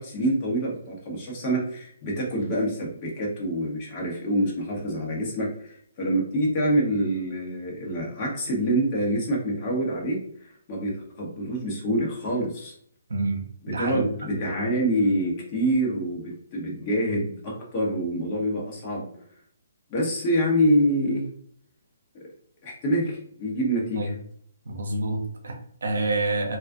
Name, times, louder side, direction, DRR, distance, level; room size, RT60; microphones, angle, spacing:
voice 1, 0.0-12.7 13.6-19.1 19.9-21.2 22.6-24.0, right 1 dB, 35° left, -3 dB, 0.8 m, -26 dB
voice 2, 13.1-14.0 23.9-24.1 24.7-26.6, right 2 dB, 70° right, 2 dB, 0.6 m, -28 dB
2.4 x 2.3 x 2.4 m, 0.64 s
figure-of-eight pair, 135°, 0 cm